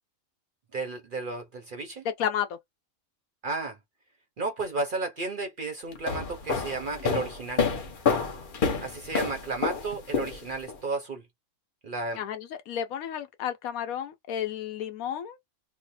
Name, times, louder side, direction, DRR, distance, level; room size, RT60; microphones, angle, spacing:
voice 1, 0.7-2.0 3.4-3.8 4.4-7.7 8.8-11.2 11.8-12.2, right 3 dB, 50° right, 0.7 m, -33 dB
voice 2, 2.2-2.6 12.2-15.4, left 9 dB, 80° left, 1.1 m, -32 dB
sound 1, 5.9-10.8, left 5 dB, 45° left, 0.8 m, -28 dB
3.1 x 2.1 x 4.1 m
omnidirectional pair, 1.5 m